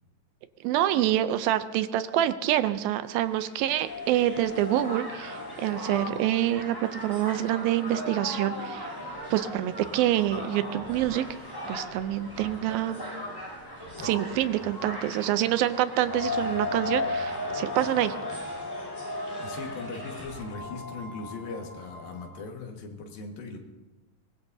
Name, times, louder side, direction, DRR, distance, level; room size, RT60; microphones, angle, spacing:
voice 1, 0.6-8.9 9.3-11.3 11.7-13.0 14.0-18.2, right 12 dB, 80° right, 12 dB, 2.4 m, -26 dB
Crowd, 3.1-20.5, equal, 5° left, 5.8 m, -38 dB
sound 1, 3.7-9.3 9.7-9.8 16.1-22.4, left 4 dB, 40° left, 2.4 m, -38 dB
sound 2, 8.7-15.6, right 1 dB, 65° right, 9.0 m, -55 dB
voice 2, 19.4-23.6, left 4 dB, 75° left, 2 dB, 3.4 m, -39 dB
23.5 x 20.0 x 2.7 m, 1.1 s
omnidirectional pair, 4.3 m